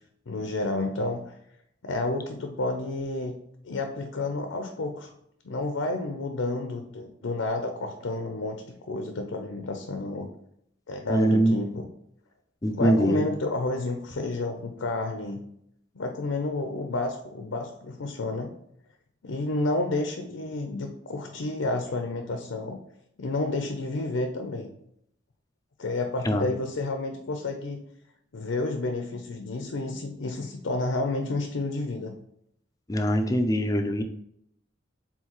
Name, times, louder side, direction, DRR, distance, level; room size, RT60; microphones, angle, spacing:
voice 1, 0.3-1.2 1.8-3.3 3.6-5.1 5.4-10.3 10.9-11.8 12.7-15.4 15.9-18.5 19.2-22.8 23.2-24.7 25.8-27.8 28.3-32.1, left 2 dB, 90° left, 4 dB, 0.6 m, -30 dB
voice 2, 11.1-11.6 12.6-13.2 26.2-26.5 32.9-34.0, equal, 20° left, 6 dB, 0.4 m, -23 dB
4.5 x 3.6 x 3.0 m, 0.73 s
head